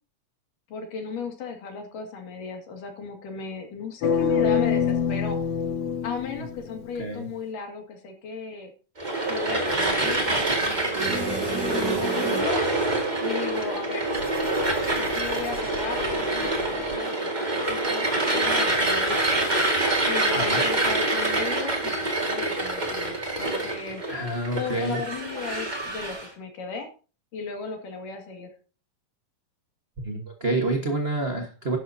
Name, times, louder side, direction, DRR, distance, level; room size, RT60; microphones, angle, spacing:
voice 1, 0.7-5.4 6.0-8.7 9.3-12.6 13.2-14.1 15.0-19.4 20.1-24.0 24.5-26.9 27.3-28.5, left 4 dB, 80° left, 3 dB, 3.7 m, -36 dB
sound 1, 4.0-7.1, left 7 dB, 60° left, 1.9 m, -25 dB
sound 2, 9.0-26.3, right 2 dB, 20° right, 1.3 m, -26 dB
sound 3, 11.0-13.0 14.1-17.0, right 3 dB, 45° right, 5.5 m, -33 dB
voice 2, 24.1-25.0 30.0-31.8, right 2 dB, 60° right, 1 dB, 0.6 m, -28 dB
12.0 x 11.0 x 2.8 m, 0.36 s
omnidirectional pair, 3.8 m